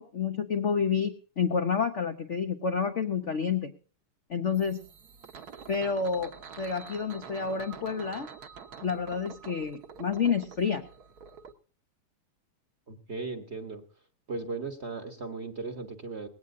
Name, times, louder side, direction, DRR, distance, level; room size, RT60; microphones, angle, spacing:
voice 1, 0.0-3.7 4.3-4.8 5.7-8.3 8.8-10.8, left 6 dB, 55° left, 6 dB, 0.8 m, -29 dB
sound 1, 4.5-11.5, right 6 dB, 50° right, 1.4 m, -47 dB
voice 2, 12.9-13.8 14.3-16.3, right 3 dB, 35° right, 8 dB, 1.2 m, -37 dB
19.5 x 17.5 x 2.6 m, 0.37 s
omnidirectional pair, 2.4 m